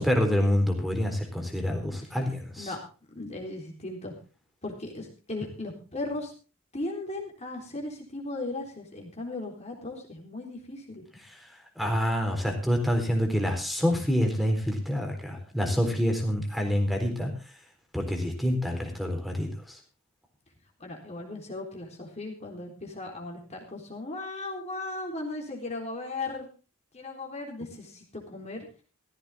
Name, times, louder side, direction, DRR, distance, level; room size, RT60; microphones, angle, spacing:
voice 1, 0.0-2.7 11.8-17.3 17.9-19.8, equal, ahead, 4 dB, 4.0 m, -27 dB
voice 2, 3.1-4.1 4.6-6.3 6.7-11.0 20.8-26.5 26.9-28.7, left 2 dB, 30° left, 0 dB, 3.9 m, -37 dB
15.5 x 15.0 x 3.7 m, 0.34 s
head